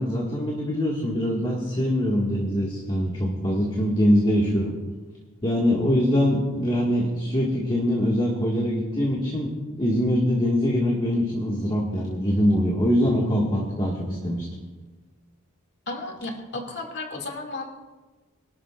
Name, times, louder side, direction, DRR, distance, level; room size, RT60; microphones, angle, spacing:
voice 1, 0.0-4.7 5.4-9.5 9.8-14.5, equal, 25° left, -3 dB, 1.8 m, -23 dB
voice 2, 15.9-17.7, left 2 dB, 50° left, 1 dB, 2.3 m, -33 dB
25.0 x 12.5 x 2.5 m, 1.3 s
head